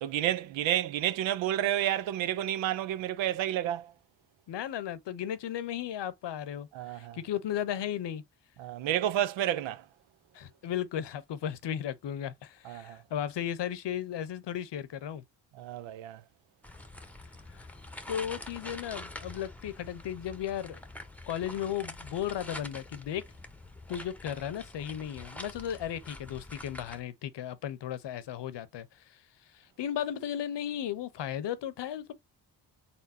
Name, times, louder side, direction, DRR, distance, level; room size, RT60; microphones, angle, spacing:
voice 1, 0.0-3.9 6.7-7.2 8.6-9.8 12.6-13.0 15.5-16.2, right 12 dB, 85° right, 0.6 m, -30 dB
voice 2, 4.5-8.2 10.3-15.2 17.5-17.6 18.1-20.8 21.3-23.2 23.9-28.9 29.5-32.1, left 10 dB, 65° left, 0.8 m, -35 dB
sound 1, 16.6-27.0, left 1 dB, 5° left, 0.9 m, -46 dB
4.3 x 3.5 x 2.6 m
supercardioid pair, 55°, 45 cm